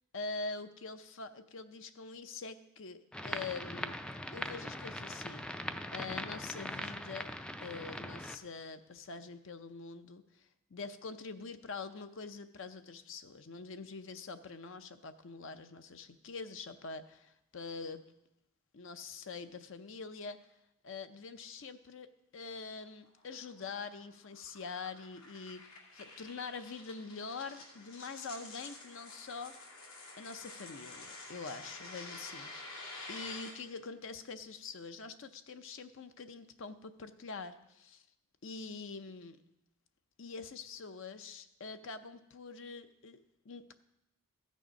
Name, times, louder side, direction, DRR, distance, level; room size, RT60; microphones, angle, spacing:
voice 1, 0.1-4.0 4.3-7.3 7.6-10.5 10.7-18.0 18.7-20.4 20.8-22.1 22.3-29.6 30.2-38.0 38.4-39.4 40.2-43.8, left 4 dB, 60° left, 10 dB, 0.6 m, -45 dB
sound 1, 3.1-8.4, left 1 dB, 5° left, 0.3 m, -41 dB
sound 2, 22.8-33.5, left 2 dB, 80° left, 2.8 m, -49 dB
14.5 x 6.5 x 5.2 m, 0.86 s
head